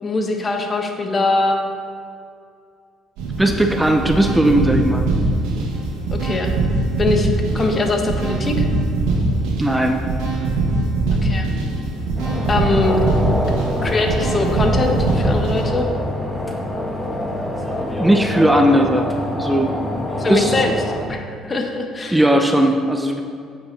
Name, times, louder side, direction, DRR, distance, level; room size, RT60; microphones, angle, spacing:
voice 1, 0.0-1.6 6.1-6.5 7.0-7.3 7.5-8.6 11.1-11.5 12.5-13.0 13.8-15.8 20.2-20.7 21.1-22.2, left 2 dB, 35° left, 3 dB, 1.5 m, -22 dB
sound 1, 3.2-15.6, right 2 dB, 75° right, 1.8 m, -22 dB
voice 2, 3.4-5.1 9.6-10.0 18.0-20.6 22.1-23.2, right 1 dB, 10° right, 4 dB, 0.8 m, -18 dB
sound 2, 12.2-21.1, left 1 dB, 15° left, 1.6 m, -25 dB
8.4 x 8.3 x 4.2 m, 2.4 s
hypercardioid pair, 60°, 0 cm